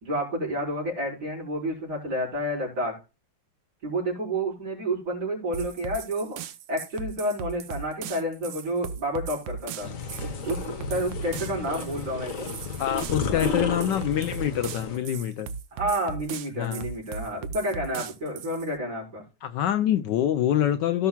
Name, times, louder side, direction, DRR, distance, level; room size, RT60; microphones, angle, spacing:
voice 1, 0.0-2.9 3.8-6.4 6.7-9.9 10.2-10.6 10.9-12.5 13.3-13.6 15.7-19.2, right 1 dB, 50° right, 5.3 m, -30 dB
sound 1, 5.5-18.7, right 6 dB, 70° right, 1.4 m, -38 dB
sound 2, 9.8-15.0, left 5 dB, 45° left, 1.3 m, -32 dB
voice 2, 12.8-15.5 16.6-16.8 19.4-21.1, left 11 dB, 75° left, 1.1 m, -25 dB
17.0 x 5.7 x 2.3 m
omnidirectional pair, 2.2 m